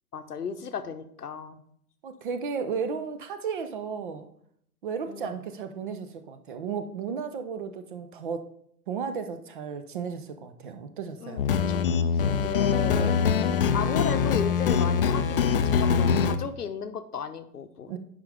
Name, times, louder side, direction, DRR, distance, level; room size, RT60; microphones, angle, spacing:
voice 1, 0.1-1.6 5.1-5.4 11.2-11.8 12.1-13.0 13.7-18.0, left 6 dB, 75° left, 10 dB, 0.8 m, -34 dB
voice 2, 2.0-4.3 4.8-8.5 8.9-11.5 13.0-13.2 17.9-18.0, right 6 dB, 35° right, 9 dB, 0.5 m, -34 dB
sound 1, 11.4-16.4, left 6 dB, 40° left, 0.4 m, -23 dB
10.0 x 5.1 x 3.4 m, 0.69 s
figure-of-eight pair, 110°, 47 cm